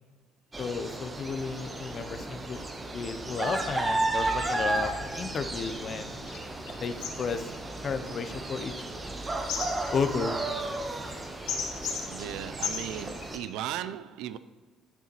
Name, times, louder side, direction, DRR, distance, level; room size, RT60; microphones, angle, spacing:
sound 1, 0.5-13.4, right 2 dB, 20° right, 0.6 m, -34 dB
voice 1, 0.6-2.6 2.9-6.1 6.8-7.5 7.8-8.7 9.9-10.4, left 5 dB, 40° left, 10 dB, 0.5 m, -33 dB
sound 2, 1.9-2.0 2.5-2.6 3.1-13.7, left 6 dB, 75° left, 1.1 m, -40 dB
sound 3, 4.5-11.3, left 1 dB, 20° left, 2.1 m, -58 dB
voice 2, 12.1-14.4, right 11 dB, 85° right, 14 dB, 0.3 m, -36 dB
9.1 x 6.6 x 3.0 m, 1.4 s
cardioid pair, 130°, 0 cm